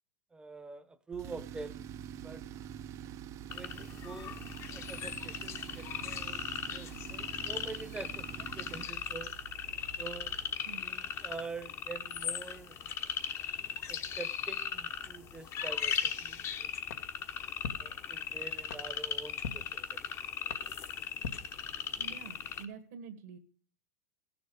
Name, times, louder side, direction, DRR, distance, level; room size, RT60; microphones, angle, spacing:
voice 1, 0.3-1.8 2.2-2.4 3.5-4.3 4.7-9.3 10.0-10.3 10.8-12.8 13.9-16.7 17.8-20.0, right 4 dB, 10° right, 0.9 m, -46 dB
Tools, 1.1-10.6, right 9 dB, 35° right, 0.6 m, -46 dB
sound 1, 3.5-22.6, left 8 dB, 30° left, 1.0 m, -38 dB
sound 2, 16.9-22.2, left 5 dB, 80° left, 1.5 m, -46 dB
voice 2, 22.0-23.4, right 6 dB, 70° right, 1.7 m, -47 dB
15.5 x 7.1 x 4.9 m
supercardioid pair, 125°, 8 cm